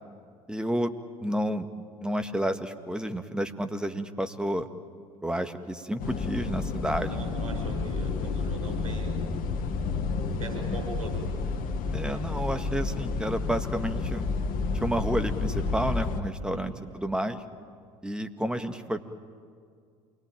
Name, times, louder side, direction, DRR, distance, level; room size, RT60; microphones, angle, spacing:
voice 1, 0.5-0.9 1.2-1.7 2.0-4.7 5.2-7.2 11.9-14.3 14.7-17.4 18.0-19.0, equal, 5° right, 8 dB, 1.9 m, -30 dB
sound 1, 6.0-16.2, left 4 dB, 55° left, 1.9 m, -30 dB
voice 2, 7.0-9.1 10.4-11.2 12.1-12.3 16.4-16.7, right 4 dB, 90° right, 1 dB, 6.9 m, -39 dB
28.0 x 21.5 x 9.1 m, 2.2 s
hypercardioid pair, 65°, 17 cm